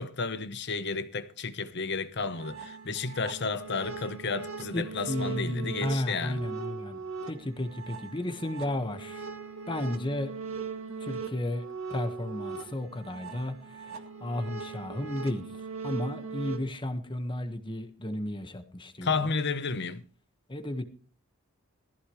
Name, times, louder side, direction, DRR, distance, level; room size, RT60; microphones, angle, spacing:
voice 1, 0.0-6.4 19.0-20.0, left 4 dB, 55° left, 1.0 m, -32 dB
sound 1, 2.2-16.6, right 5 dB, 65° right, 2.0 m, -40 dB
voice 2, 4.7-9.3 9.7-10.3 11.0-15.5 15.8-19.3 20.5-20.8, left 1 dB, 25° left, 1.4 m, -33 dB
18.0 x 15.0 x 3.2 m
head